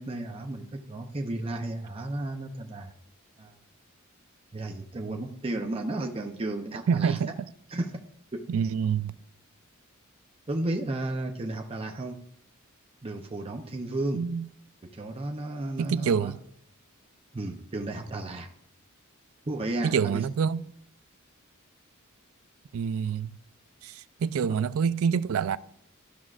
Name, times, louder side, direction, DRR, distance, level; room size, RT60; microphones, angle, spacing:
voice 1, 0.0-2.9 3.4-3.5 4.5-7.2 7.7-7.9 8.3-8.4 10.5-12.2 13.0-14.2 14.9-16.3 17.3-18.5 19.5-20.2, right 2 dB, 25° right, 0.6 m, -33 dB
voice 2, 6.9-7.3 8.5-9.2 14.1-14.5 15.8-16.4 19.8-20.6 22.7-23.4 23.8-25.6, right 6 dB, 75° right, 0.3 m, -26 dB
13.0 x 6.1 x 2.4 m
head